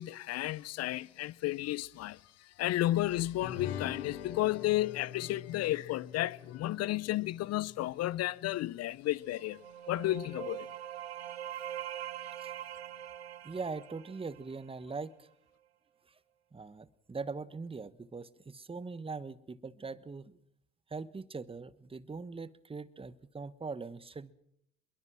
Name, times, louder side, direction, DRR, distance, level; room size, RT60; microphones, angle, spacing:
voice 1, 0.0-2.2 2.6-9.6 9.9-10.7, left 15 dB, 50° left, 0.9 m, -32 dB
sound 1, 3.4-8.1, left 9 dB, 80° left, 2.0 m, -44 dB
sound 2, 9.2-14.9, right 11 dB, 90° right, 1.0 m, -43 dB
voice 2, 13.4-15.3 16.1-16.2 16.5-20.4 20.9-24.3, right 4 dB, 15° right, 1.3 m, -41 dB
26.5 x 22.0 x 6.2 m
hypercardioid pair, 65°, 31 cm